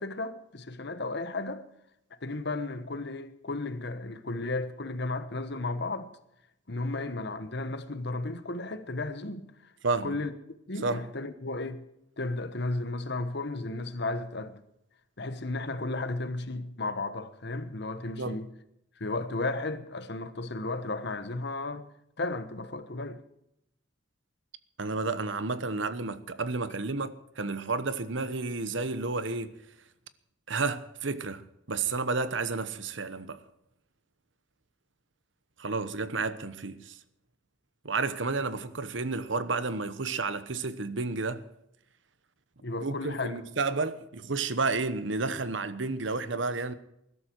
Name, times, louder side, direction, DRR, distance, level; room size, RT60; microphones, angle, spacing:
voice 1, 0.0-1.6 2.2-6.1 6.7-9.5 10.0-10.3 10.7-11.8 12.2-14.6 15.2-18.5 19.0-21.9 22.2-23.2 42.6-43.3, left 2 dB, 60° left, 1.3 m, -34 dB
voice 2, 9.8-10.2 10.8-11.0 18.2-18.4 24.8-29.6 30.5-33.4 35.6-37.0 37.8-41.5 42.8-46.7, right 3 dB, 75° right, 1.1 m, -31 dB
20.5 x 12.0 x 4.7 m
head